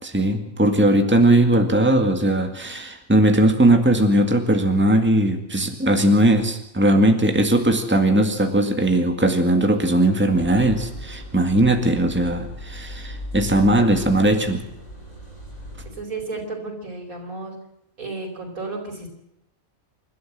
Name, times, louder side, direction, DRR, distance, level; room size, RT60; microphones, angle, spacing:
voice 1, 0.0-14.6, right 1 dB, 10° right, 5 dB, 2.0 m, -19 dB
sound 1, 10.3-15.9, equal, 75° left, 8.2 m, -37 dB
voice 2, 15.9-17.5 18.0-19.1, right 3 dB, 90° right, 2 dB, 5.1 m, -32 dB
27.5 x 13.0 x 7.6 m, 0.80 s
omnidirectional pair, 1.4 m